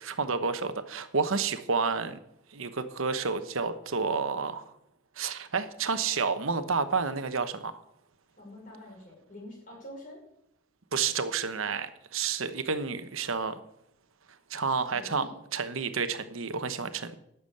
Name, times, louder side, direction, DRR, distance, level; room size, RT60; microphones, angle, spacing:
voice 1, 0.0-2.2 2.5-4.7 5.2-7.8 10.9-13.6 14.5-17.2, right 5 dB, 75° right, 10 dB, 1.0 m, -30 dB
voice 2, 8.4-10.2 14.9-15.3, left 1 dB, 40° left, -1 dB, 5.7 m, -46 dB
12.0 x 7.1 x 8.5 m, 0.79 s
head